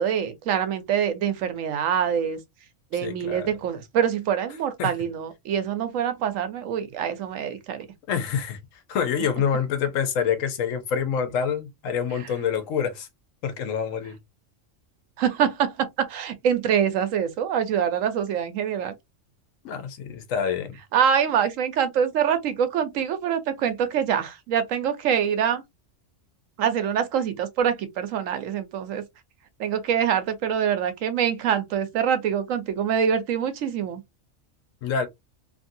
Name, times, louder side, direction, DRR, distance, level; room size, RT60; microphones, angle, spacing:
voice 1, 0.0-2.4 2.9-7.9 15.2-18.9 20.9-25.6 26.6-29.0 29.6-34.0, right 8 dB, 85° right, 1.1 m, -25 dB
voice 2, 3.0-3.5 4.8-4.9 8.1-8.6 8.9-13.1 13.4-14.2 19.6-20.8 34.8-35.1, left 7 dB, 85° left, 1.1 m, -26 dB
2.8 x 2.6 x 2.6 m
omnidirectional pair, 1.3 m